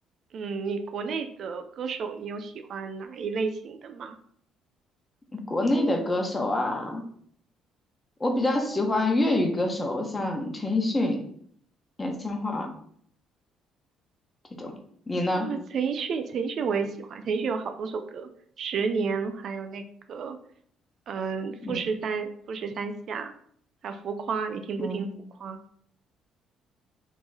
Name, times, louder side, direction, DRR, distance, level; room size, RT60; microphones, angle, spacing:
voice 1, 0.3-4.2 15.4-18.3 18.6-20.4 21.1-23.3 23.8-25.1 25.4-25.6, right 5 dB, 60° right, 8 dB, 0.4 m, -31 dB
voice 2, 5.3-7.0 8.2-11.2 12.0-12.7 14.5-14.7 15.1-15.5 21.6-21.8 24.8-25.1, left 1 dB, 20° left, 2 dB, 1.1 m, -26 dB
3.6 x 3.0 x 3.9 m, 0.62 s
supercardioid pair, 70°, 0 cm